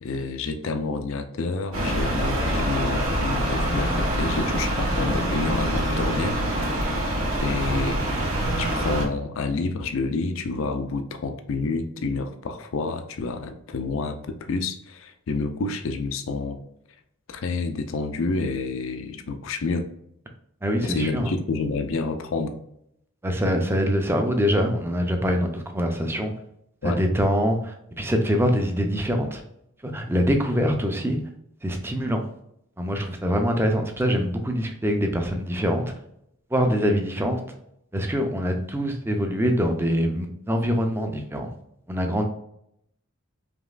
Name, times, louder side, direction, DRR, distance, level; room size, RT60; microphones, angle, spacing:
voice 1, 0.0-6.4 6.6-6.9 7.4-8.3 8.6-16.6 17.3-19.9 20.8-22.6 26.8-27.0, left 3 dB, 70° left, 8 dB, 0.4 m, -29 dB
sound 1, 1.7-9.1, right 1 dB, 75° right, 1.4 m, -25 dB
voice 2, 20.6-21.3 23.2-26.3 26.8-29.4 29.8-31.2 31.6-32.2 32.8-35.9 36.5-37.4 37.9-41.5 41.9-42.2, equal, 10° right, 4 dB, 0.5 m, -24 dB
5.1 x 3.0 x 2.4 m, 0.76 s
head